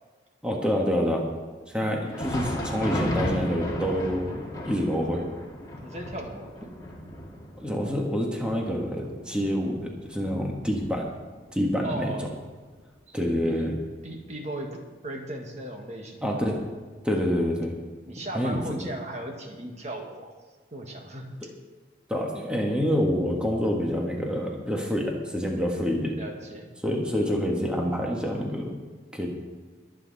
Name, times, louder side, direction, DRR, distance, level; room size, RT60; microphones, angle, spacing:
voice 1, 0.4-1.2 1.7-5.2 7.6-11.1 11.5-12.1 13.1-13.7 16.2-16.6 17.0-17.7 18.3-18.6 22.1-26.2 26.8-28.8 29.1-29.3, equal, 5° right, -1 dB, 1.7 m, -27 dB
Thunder, 2.0-11.4 11.7-11.9 12.6-12.8 13.8-13.9, left 1 dB, 20° left, 2.2 m, -35 dB
voice 2, 5.8-6.6 11.8-12.4 13.4-13.6 14.0-16.4 18.1-20.3 20.7-21.5 26.1-26.7, right 1 dB, 35° right, 2 dB, 1.6 m, -37 dB
22.0 x 8.6 x 4.2 m, 1.4 s
head